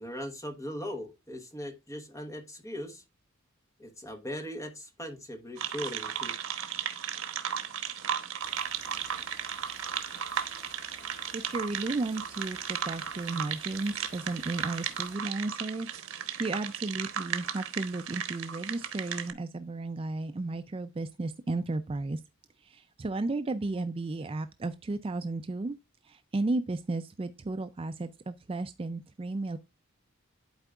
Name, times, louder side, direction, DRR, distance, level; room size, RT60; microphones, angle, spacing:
voice 1, 0.0-3.0 3.8-6.3, equal, 15° left, 1.0 m, -39 dB
sound 1, 5.6-19.3, right 8 dB, 80° right, 1.1 m, -35 dB
sound 2, 8.4-15.2, left 2 dB, 50° left, 2.8 m, -54 dB
voice 2, 11.3-15.9 16.2-22.2 22.6-25.8 26.0-29.6, right 2 dB, 25° right, 0.3 m, -34 dB
11.5 x 4.5 x 2.3 m
head